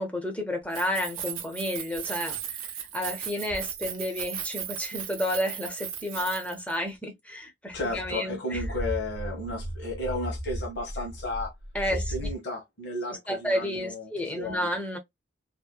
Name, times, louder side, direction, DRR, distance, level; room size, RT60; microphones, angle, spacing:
voice 1, 0.0-2.6 2.9-8.6 11.7-12.0 13.3-15.0, left 1 dB, 5° left, 0.5 m, -31 dB
Keys jangling, 0.6-6.8, right 9 dB, 90° right, 0.6 m, -36 dB
sound 1, 7.7-12.4, equal, 80° left, 0.7 m, -36 dB
voice 2, 7.7-11.5 11.9-14.7, left 2 dB, 55° left, 1.1 m, -34 dB
2.8 x 2.1 x 2.2 m
head